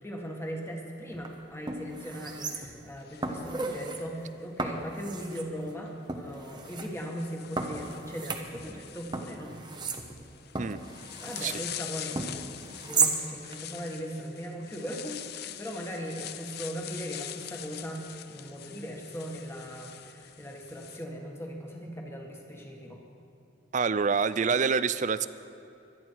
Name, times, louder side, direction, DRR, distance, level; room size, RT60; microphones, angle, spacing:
voice 1, 0.0-9.6 11.2-23.0, equal, 15° left, 0 dB, 1.8 m, -39 dB
sound 1, 1.1-1.3 1.7-2.9 3.2-4.0 4.6-5.5 6.1-6.9 7.6-8.8 9.1-11.6 12.2-13.2 13.5-13.6, right 4 dB, 20° right, 1.0 m, -33 dB
sound 2, 3.0-4.5 5.7-5.9 6.6-21.0, left 12 dB, 55° left, 0.5 m, -44 dB
voice 2, 23.7-25.3, right 5 dB, 40° right, 15 dB, 0.4 m, -26 dB
25.0 x 10.5 x 4.7 m, 2.9 s
head